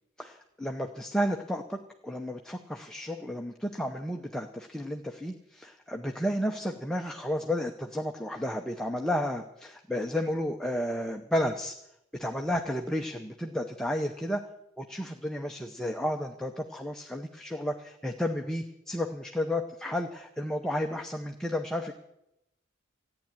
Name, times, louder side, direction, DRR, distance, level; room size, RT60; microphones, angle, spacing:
voice 1, 0.2-11.7 12.1-14.4 14.8-21.9, equal, 5° left, 2 dB, 0.8 m, -32 dB
14.5 x 9.6 x 8.9 m, 0.82 s
head